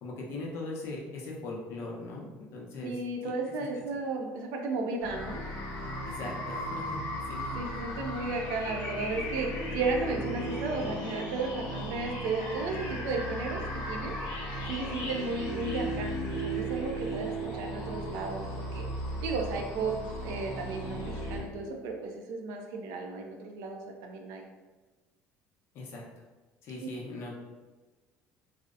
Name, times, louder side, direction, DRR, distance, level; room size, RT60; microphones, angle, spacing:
voice 1, 0.0-3.3 6.1-7.5 25.7-26.0 26.6-27.3, left 2 dB, 55° left, -2 dB, 0.6 m, -40 dB
voice 2, 2.8-5.4 7.5-13.6 13.9-14.1 14.7-18.9 19.2-19.9 20.2-24.4 26.8-26.9, right 3 dB, 80° right, 2 dB, 0.4 m, -34 dB
sound 1, 5.0-21.4, equal, 70° left, 0.9 m, -36 dB
2.7 x 2.0 x 2.4 m, 1.2 s
cardioid pair, 150°, 5 cm